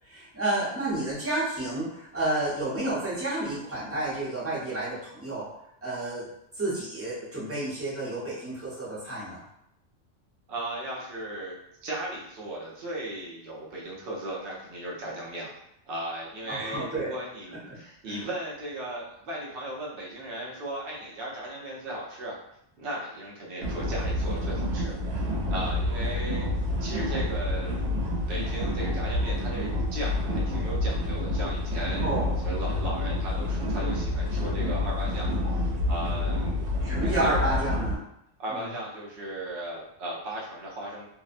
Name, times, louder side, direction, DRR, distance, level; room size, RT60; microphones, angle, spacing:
voice 1, 0.0-5.5 5.8-6.2 6.5-9.4 16.5-17.1 17.5-17.8 18.1-18.2 25.5-25.7 32.0-32.4 36.8-38.0 38.5-38.7, right 2 dB, 15° right, -8 dB, 0.8 m, -30 dB
voice 2, 10.5-11.6 11.8-15.5 15.9-22.4 22.8-26.5 26.8-27.7 28.3-32.2 32.4-36.7 37.0-37.6 38.4-41.1, right 1 dB, 55° right, -4 dB, 0.8 m, -36 dB
sound 1, 23.6-38.0, left 1 dB, 90° right, 1.0 m, -28 dB
2.7 x 2.1 x 2.5 m, 0.78 s
omnidirectional pair, 1.3 m